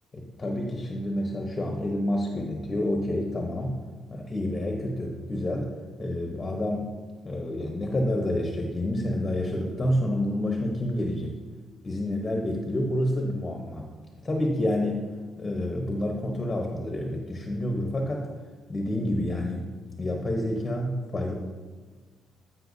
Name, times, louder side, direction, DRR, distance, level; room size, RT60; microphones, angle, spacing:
voice 1, 0.1-3.8 4.1-5.7 6.0-7.0 7.2-11.4 11.8-13.9 14.2-15.1 15.4-18.3 18.7-19.7 20.0-21.3, left 1 dB, 25° left, 1 dB, 0.9 m, -28 dB
13.0 x 5.7 x 2.7 m, 1.4 s
cardioid pair, 90°, 0 cm